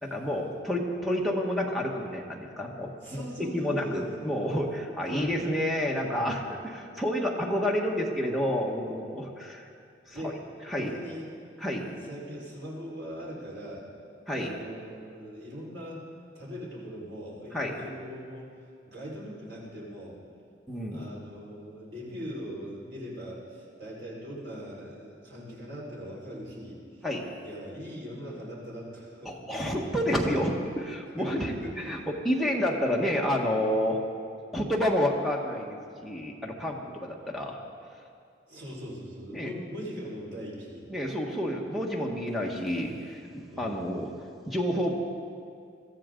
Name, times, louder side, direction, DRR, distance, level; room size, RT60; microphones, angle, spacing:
voice 1, 0.0-2.9 3.4-9.7 10.1-10.4 10.7-10.9 11.6-11.9 14.3-14.5 17.5-17.8 20.7-21.1 27.0-27.2 29.2-32.0 32.2-34.0 34.5-37.6 39.3-39.5 40.9-44.1 44.5-44.9, equal, ahead, -1 dB, 1.4 m, -29 dB
voice 2, 3.0-4.3 5.1-5.3 10.1-10.4 10.6-11.3 11.8-13.9 14.4-16.0 16.3-18.5 18.9-20.1 20.9-27.1 27.4-29.6 31.2-32.0 38.5-40.9 43.5-43.8, equal, 65° right, -5 dB, 4.5 m, -41 dB
22.0 x 14.0 x 3.8 m, 2.3 s
head